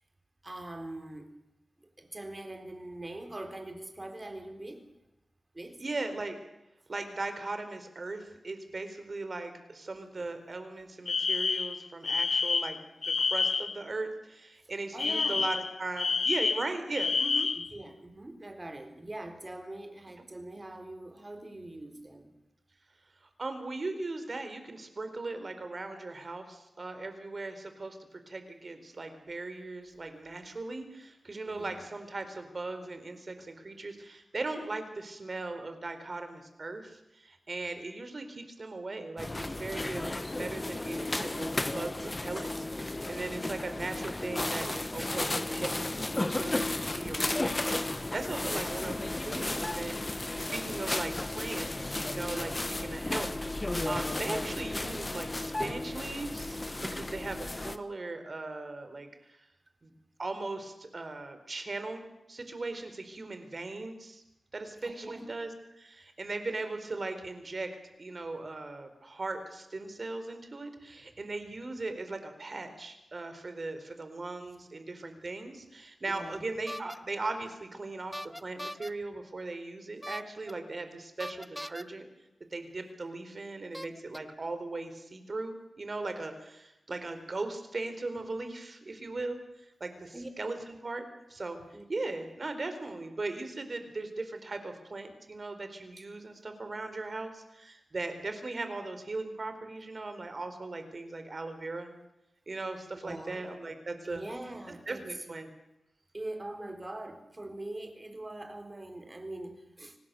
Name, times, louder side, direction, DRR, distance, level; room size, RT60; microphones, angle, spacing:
voice 1, 0.4-1.4 1.8-4.9 5.5-5.8 10.2-10.3 11.5-11.6 14.9-15.5 17.5-22.3 31.4-31.8 43.2-43.5 64.8-65.3 76.1-76.4 90.1-90.3 91.7-91.9 103.0-103.4 104.0-105.2 106.1-110.0, right 1 dB, 25° right, 6 dB, 3.9 m, -42 dB
voice 2, 5.8-6.4 6.9-17.5 23.4-28.0 28.3-59.4 59.8-59.9 60.2-64.2 64.5-65.5 65.7-67.7 68.0-82.0 82.5-90.6 90.8-91.6 91.9-101.9 102.5-104.2 104.9-105.5, right 3 dB, 45° right, 8 dB, 4.3 m, -38 dB
Alarm, 11.1-13.8 15.0-17.7, left 4 dB, 65° left, 0.8 m, -29 dB
sound 1, 39.2-57.8, left 2 dB, 25° left, 1.2 m, -34 dB
sound 2, 76.7-77.0 78.1-78.9 80.0-80.5 81.2-81.8 82.9-83.0 83.7-84.2, equal, ahead, 0.9 m, -40 dB
25.0 x 19.0 x 7.0 m, 0.91 s
wide cardioid pair, 80°, 0 cm